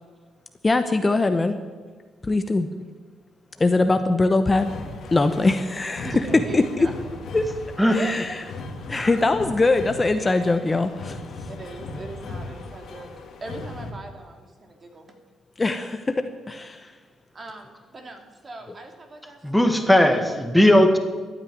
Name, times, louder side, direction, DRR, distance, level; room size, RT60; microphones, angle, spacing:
voice 1, 0.6-1.6 2.2-2.7 3.6-4.7 5.1-6.1 6.5-6.9 7.3-7.4 7.9-8.4 8.9-11.2 15.6-16.9, left 3 dB, 25° left, 8 dB, 0.9 m, -22 dB
sound 1, 4.5-13.9, left 3 dB, 60° left, 2.2 m, -37 dB
voice 2, 6.0-7.1 8.0-8.1 10.2-10.3 11.5-13.1 13.4-15.2 17.3-20.0, right 2 dB, 35° right, 4 dB, 2.7 m, -39 dB
voice 3, 19.4-21.0, left 1 dB, 5° left, 5 dB, 1.9 m, -18 dB
13.0 x 9.1 x 9.4 m, 1.5 s
cardioid pair, 90°, 0 cm